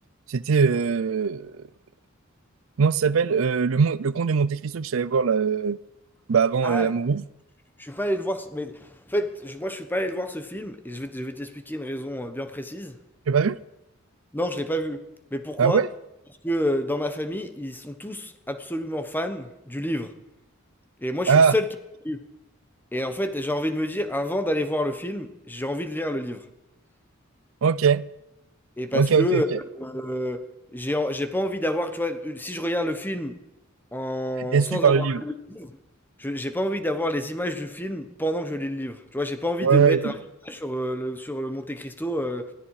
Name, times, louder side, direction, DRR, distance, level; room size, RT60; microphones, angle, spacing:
voice 1, 0.3-1.5 2.8-5.8 6.3-7.2 13.3-13.6 15.6-15.9 21.3-21.5 27.6-28.0 28.9-29.6 34.5-35.2 39.6-40.1, right 5 dB, 80° right, 0.5 m, -21 dB
voice 2, 6.6-7.2 7.8-13.0 14.3-15.0 15.3-15.8 16.4-20.1 21.0-21.7 22.0-22.2 22.9-26.4 28.8-29.5 29.8-30.4 30.7-33.4 33.9-35.8 36.2-40.1 40.4-42.5, equal, 10° left, 1.2 m, -29 dB
20.5 x 14.5 x 4.9 m
head